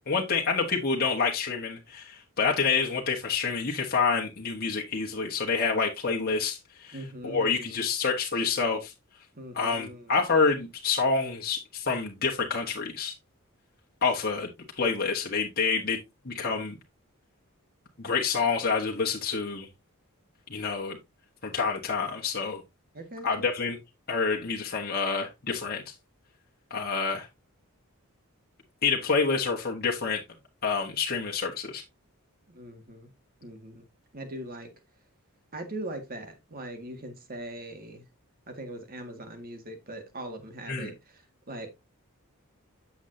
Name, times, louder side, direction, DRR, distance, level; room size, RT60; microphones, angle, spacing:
voice 1, 0.1-7.0 7.2-8.9 9.5-13.1 14.0-14.5 14.8-16.0 16.2-16.8 18.0-19.7 20.5-21.0 21.4-22.6 23.2-23.8 24.1-25.8 26.7-27.3 28.8-30.2 30.6-31.8 40.7-40.9, left 5 dB, 45° left, 1.4 m, -27 dB
voice 2, 6.9-7.8 9.3-10.2 22.9-23.5 32.5-33.1 33.4-33.8 34.1-34.7 35.5-38.1 38.5-41.7, right 1 dB, 40° right, 1.9 m, -41 dB
8.4 x 7.2 x 2.7 m
head